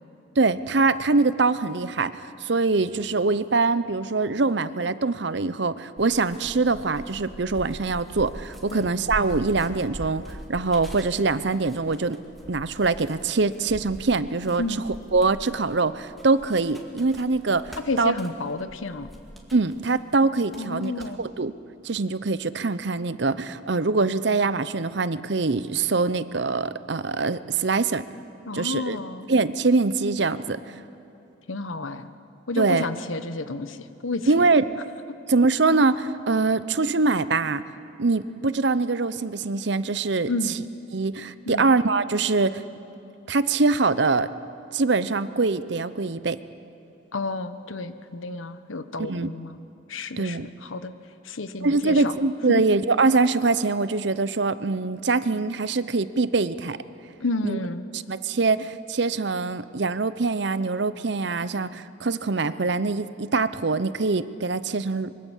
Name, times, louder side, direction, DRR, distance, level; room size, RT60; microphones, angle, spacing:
voice 1, 0.4-12.2 12.5-14.6 15.1-18.1 19.5-20.9 21.2-21.5 21.8-28.0 28.5-29.0 29.3-30.6 32.6-32.9 34.3-34.8 35.3-37.6 38.0-40.3 40.9-42.6 43.3-44.3 44.7-46.4 49.1-49.3 50.2-50.5 51.6-56.8 57.4-57.6 57.9-65.1, right 3 dB, 65° right, 15 dB, 0.7 m, -23 dB
sound 1, 6.0-20.0 20.3-21.1, equal, ahead, 2.2 m, -42 dB
voice 2, 17.9-19.1 20.5-21.2 28.4-29.3 31.5-32.1 32.5-34.3 40.3-40.6 41.5-41.7 47.1-49.6 49.9-50.9 51.2-52.1 52.5-52.6 57.2-57.8, left 3 dB, 90° left, 11 dB, 1.1 m, -30 dB
25.0 x 23.5 x 7.3 m, 3.0 s
head